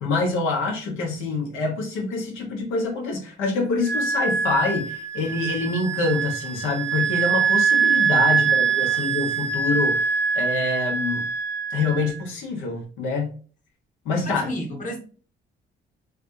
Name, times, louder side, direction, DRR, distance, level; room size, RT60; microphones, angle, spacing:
voice 1, 0.0-10.1 10.3-11.3 11.7-13.3 14.0-14.5, left 3 dB, 90° left, 0 dB, 1.1 m, -26 dB
Wind instrument woodwind instrument, 3.8-12.1, right 6 dB, 70° right, 0.8 m, -23 dB
voice 2, 8.3-9.1 14.2-15.0, equal, 40° left, 0 dB, 1.2 m, -34 dB
3.4 x 2.5 x 2.7 m, 0.39 s
cardioid pair, 90°, 20 cm